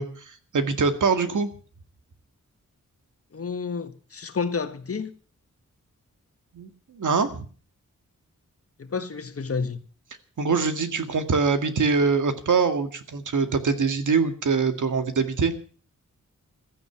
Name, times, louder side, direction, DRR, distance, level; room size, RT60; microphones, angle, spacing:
voice 1, 0.0-1.5 6.5-6.7 6.9-7.5 10.4-15.5, right 5 dB, 70° right, 2.1 m, -23 dB
voice 2, 3.3-5.1 8.8-9.8, left 5 dB, 45° left, 1.7 m, -30 dB
16.0 x 13.5 x 5.8 m
wide cardioid pair, 145°, 31 cm